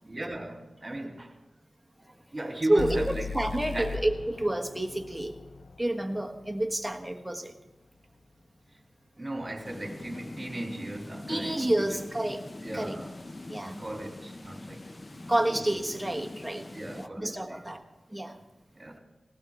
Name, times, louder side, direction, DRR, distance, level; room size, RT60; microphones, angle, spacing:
voice 1, 0.0-1.3 2.3-3.4 3.7-4.0 9.1-12.1 12.6-13.2 13.6-15.2 15.5-15.6 16.7-17.7 18.7-19.0, right 1 dB, 25° right, 2.9 m, -37 dB
voice 2, 2.7-5.4 5.8-7.5 11.3-12.5 12.7-13.0 13.5-13.8 15.3-16.7 16.9-17.8 18.1-18.4, right 1 dB, 10° right, 1.4 m, -29 dB
sound 1, 2.8-6.7, left 5 dB, 80° left, 0.6 m, -38 dB
sound 2, 9.6-17.1, left 2 dB, 30° left, 0.6 m, -43 dB
19.0 x 18.0 x 3.6 m
wide cardioid pair, 80°, 0 cm